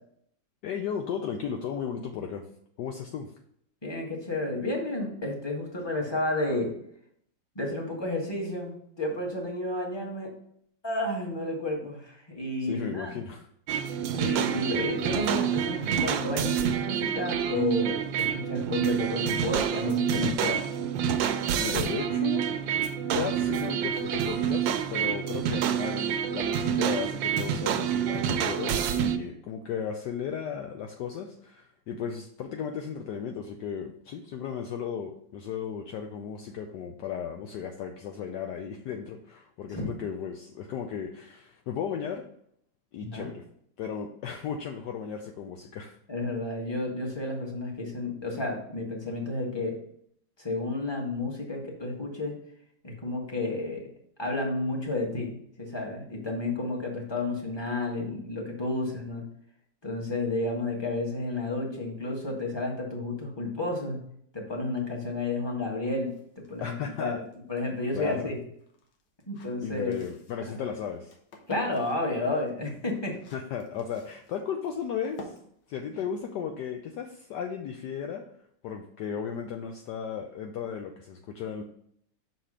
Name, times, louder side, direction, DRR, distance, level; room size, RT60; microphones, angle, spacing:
voice 1, 0.6-2.4 2.8-3.3 12.6-13.5 14.5-15.2 21.6-22.5 23.1-42.2 42.9-43.4 43.8-46.0 66.6-67.2 67.9-68.3 69.6-71.1 73.3-75.3 75.7-78.2 78.6-81.6, left 7 dB, 70° left, 4 dB, 1.1 m, -35 dB
voice 2, 3.8-6.7 7.5-10.3 10.8-13.2 14.1-20.7 39.7-39.9 43.0-43.3 46.1-49.8 50.4-52.4 52.8-53.9 54.2-59.2 59.8-64.0 64.3-66.1 66.5-67.1 67.5-68.4 69.3-69.9 70.5-70.6 71.5-73.2, left 2 dB, 15° left, -1 dB, 1.3 m, -31 dB
sound 1, 13.7-29.2, right 8 dB, 80° right, 1.3 m, -28 dB
sound 2, 66.0-76.9, left 4 dB, 85° left, 1.8 m, -49 dB
6.0 x 4.2 x 4.9 m, 0.67 s
omnidirectional pair, 2.0 m